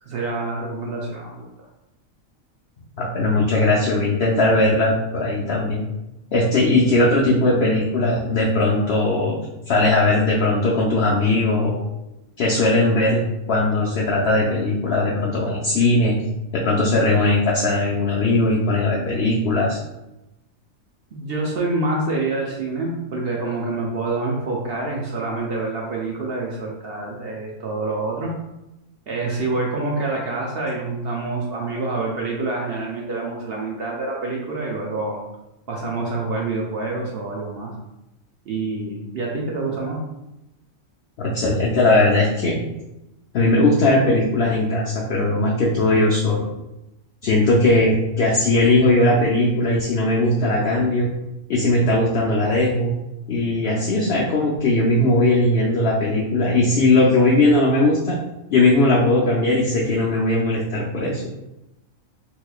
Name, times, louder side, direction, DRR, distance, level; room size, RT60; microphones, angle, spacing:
voice 1, 0.0-1.5 21.1-28.3 29.1-35.2 35.7-37.7 38.5-40.0, right 3 dB, 60° right, -2 dB, 0.7 m, -27 dB
voice 2, 3.0-5.9 6.3-11.8 12.4-13.2 13.5-16.2 16.5-19.8 41.2-42.6 43.3-46.4 47.2-51.1 51.5-52.9 53.3-58.2 58.5-61.4, left 2 dB, 60° left, -4 dB, 0.7 m, -19 dB
3.8 x 3.0 x 2.3 m, 0.93 s
omnidirectional pair, 1.4 m